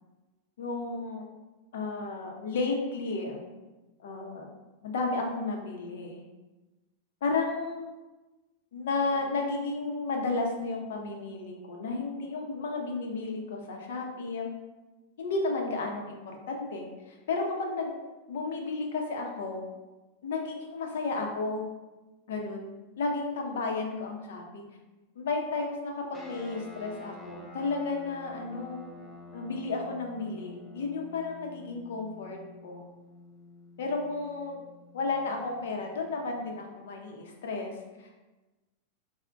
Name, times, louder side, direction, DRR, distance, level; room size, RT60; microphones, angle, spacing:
voice 1, 0.6-1.3 1.7-3.4 4.0-4.5 4.8-6.2 7.2-7.9 8.7-14.5 15.2-17.9 18.3-19.6 20.2-21.6 22.3-22.7 23.0-24.6 25.2-28.8 29.3-32.4 32.6-32.8 33.8-34.6 34.9-37.7 38.0-38.2, left 3 dB, 75° left, 1 dB, 0.6 m, -33 dB
sound 1, 26.1-36.8, left 2 dB, 10° left, 0.3 m, -50 dB
4.4 x 2.1 x 2.5 m, 1.1 s
supercardioid pair, 170°, 0 cm